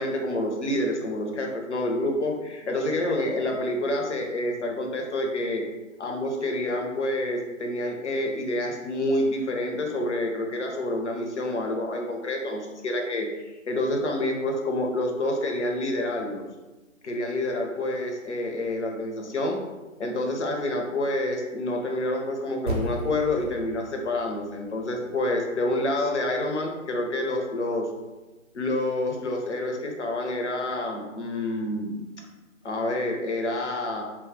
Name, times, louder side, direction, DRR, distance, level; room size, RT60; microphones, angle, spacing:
voice 1, 0.0-5.7 6.0-13.3 13.7-16.4 17.0-19.6 20.0-27.9 28.5-32.0 32.6-34.0, left 1 dB, 60° left, 2 dB, 0.6 m, -28 dB
sound 1, 22.7-27.2, right 2 dB, 40° right, 0.6 m, -37 dB
2.2 x 2.0 x 3.5 m, 1.1 s
figure-of-eight pair, 145°, 40 cm